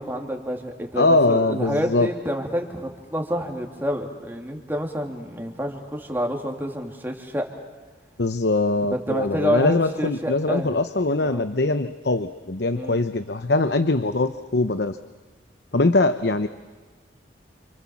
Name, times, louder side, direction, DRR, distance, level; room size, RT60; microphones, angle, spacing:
voice 1, 0.0-7.5 8.9-10.8 11.1-11.5 12.7-13.0 15.7-15.9, equal, 10° right, 2 dB, 3.0 m, -28 dB
voice 2, 1.0-2.1 8.2-15.0 15.7-16.5, left 2 dB, 65° left, 10 dB, 0.9 m, -22 dB
29.5 x 28.0 x 7.3 m, 1.4 s
head